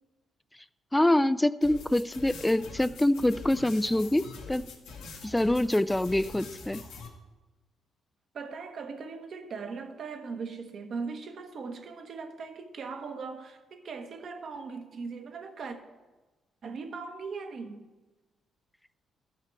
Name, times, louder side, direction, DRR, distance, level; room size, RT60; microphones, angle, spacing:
voice 1, 0.9-4.6 5.2-6.8, left 1 dB, 10° left, 0.3 m, -25 dB
sound 1, 1.6-7.1, left 3 dB, 85° left, 1.7 m, -44 dB
voice 2, 8.3-15.8 16.6-17.9, right 4 dB, 55° right, 1.1 m, -39 dB
14.0 x 5.8 x 4.5 m
cardioid pair, 90°, 0 cm